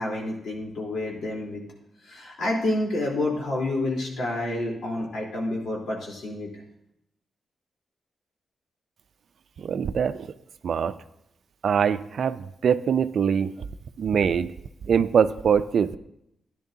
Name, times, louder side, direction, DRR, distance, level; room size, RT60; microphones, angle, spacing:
voice 1, 0.0-1.6 2.1-6.5, left 1 dB, 75° left, -2 dB, 3.6 m, -29 dB
voice 2, 9.6-10.3 10.6-10.9 11.6-13.5 14.0-14.5 14.9-16.0, right 7 dB, 70° right, 13 dB, 0.5 m, -23 dB
14.0 x 10.5 x 2.8 m, 0.80 s
cardioid pair, 55°, 0 cm